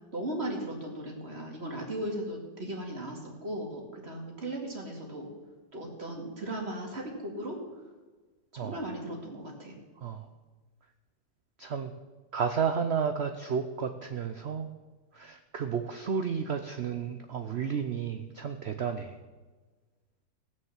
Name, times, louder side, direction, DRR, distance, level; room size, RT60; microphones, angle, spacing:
voice 1, 0.1-5.3 5.7-7.6 8.5-9.8, right 1 dB, 35° right, 0 dB, 2.6 m, -37 dB
voice 2, 11.6-11.9 12.3-14.7 15.1-19.2, right 6 dB, 60° right, 7 dB, 0.7 m, -32 dB
18.0 x 6.6 x 7.3 m, 1.3 s
omnidirectional pair, 1.9 m